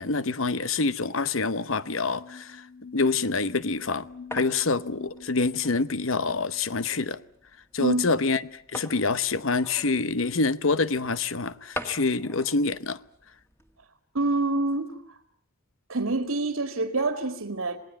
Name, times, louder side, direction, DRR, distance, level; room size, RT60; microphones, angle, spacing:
voice 1, 0.0-2.6 2.9-4.1 4.3-7.2 7.7-13.0, left 3 dB, 65° left, 0.9 m, -26 dB
sound 1, 1.3-7.1, left 4 dB, 90° left, 2.2 m, -46 dB
sound 2, 4.1-13.9, equal, 10° left, 2.1 m, -44 dB
voice 2, 7.8-8.1 14.1-15.0 15.9-17.8, right 2 dB, 75° right, 2.0 m, -26 dB
27.0 x 18.5 x 8.9 m
head